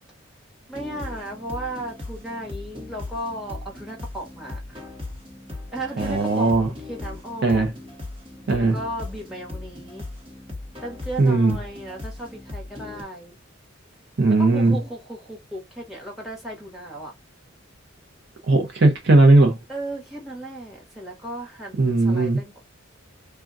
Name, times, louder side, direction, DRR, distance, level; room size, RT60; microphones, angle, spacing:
voice 1, 0.7-4.8 5.7-7.7 8.6-10.0 10.8-13.4 14.4-17.1 19.7-22.6, right 1 dB, ahead, 1.0 m, -35 dB
sound 1, 0.7-13.0, left 2 dB, 25° right, 1.0 m, -38 dB
voice 2, 6.0-6.7 7.4-7.7 8.5-8.8 11.2-11.6 14.2-14.8 18.5-19.6 21.8-22.4, right 2 dB, 55° right, 0.6 m, -18 dB
3.5 x 2.2 x 2.4 m
head